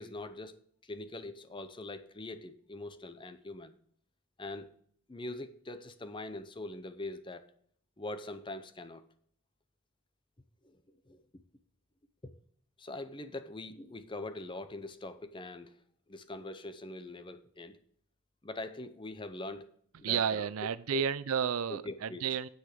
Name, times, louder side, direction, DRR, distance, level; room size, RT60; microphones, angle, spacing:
voice 1, 0.0-3.7 4.4-4.7 5.1-7.5 8.0-9.0 10.6-10.8 11.1-11.2 12.2-12.3 12.8-15.7 16.1-17.8 18.4-19.7 20.0-20.5 20.9-21.0 21.7-22.3, left 2 dB, 25° left, 0.6 m, -43 dB
voice 2, 20.0-22.5, right 8 dB, 90° right, 0.5 m, -31 dB
9.5 x 8.0 x 5.0 m
head